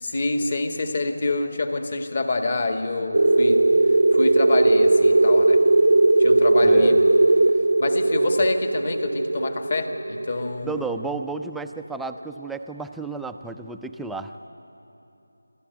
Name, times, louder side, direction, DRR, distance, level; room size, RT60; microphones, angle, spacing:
voice 1, 0.0-3.7 4.1-5.6 6.2-7.1 7.8-10.8, left 2 dB, 45° left, 6 dB, 1.6 m, -26 dB
sound 1, 3.1-11.5, right 2 dB, 75° right, 0.6 m, -18 dB
voice 2, 6.6-7.0 10.6-14.4, right 4 dB, ahead, 5 dB, 0.4 m, -32 dB
26.5 x 13.0 x 9.2 m, 2.9 s
figure-of-eight pair, 170°, 0 cm